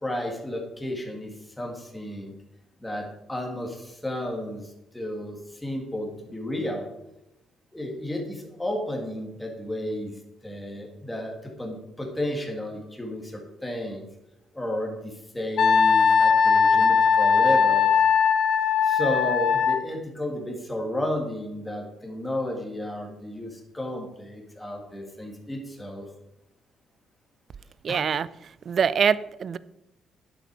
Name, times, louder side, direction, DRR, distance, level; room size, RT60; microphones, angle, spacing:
voice 1, 0.0-2.3 2.8-6.9 7.7-14.1 14.5-17.9 18.8-26.1 27.9-28.0, left 1 dB, 10° left, 1 dB, 2.2 m, -32 dB
Wind instrument woodwind instrument, 15.6-19.8, left 6 dB, 65° left, 0.8 m, -19 dB
voice 2, 27.8-28.3 28.7-29.6, right 7 dB, 45° right, 17 dB, 0.4 m, -24 dB
11.0 x 8.0 x 4.8 m, 0.87 s
cardioid pair, 130°, 0 cm